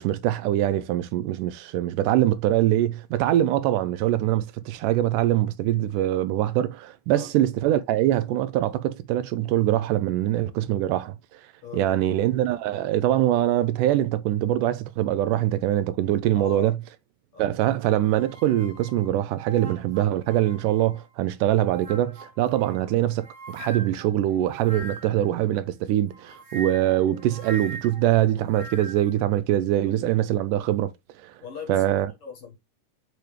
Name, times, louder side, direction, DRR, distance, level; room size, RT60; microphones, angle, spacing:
voice 1, 0.0-11.2 11.7-16.8 17.4-30.9 31.2-31.3 31.7-32.1, right 13 dB, 80° right, 2.0 m, -23 dB
voice 2, 11.6-12.1 16.3-16.7 17.3-17.5 29.8-30.0 31.4-32.6, left 6 dB, 50° left, 2.0 m, -40 dB
sound 1, 17.8-21.1 21.6-25.3 26.1-29.1, right 3 dB, 35° right, 1.2 m, -42 dB
6.9 x 4.6 x 3.2 m
omnidirectional pair, 3.8 m